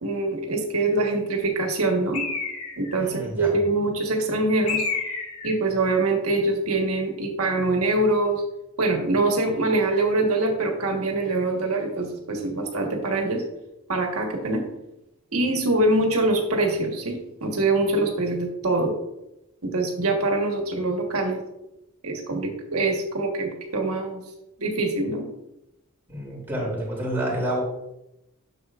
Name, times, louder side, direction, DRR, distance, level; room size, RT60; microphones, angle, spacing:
voice 1, 0.0-2.2 2.8-4.8 5.4-8.4 8.8-13.4 13.9-14.6 15.3-18.9 19.6-21.4 22.0-24.2 24.6-25.3, right 2 dB, 80° right, 1 dB, 1.4 m, -24 dB
Bird, 2.1-3.0 4.7-5.6, left 4 dB, 85° left, 1.7 m, -29 dB
voice 2, 3.0-3.5 26.1-27.6, right 1 dB, 10° right, -6 dB, 2.9 m, -28 dB
10.0 x 6.8 x 2.4 m, 0.88 s
head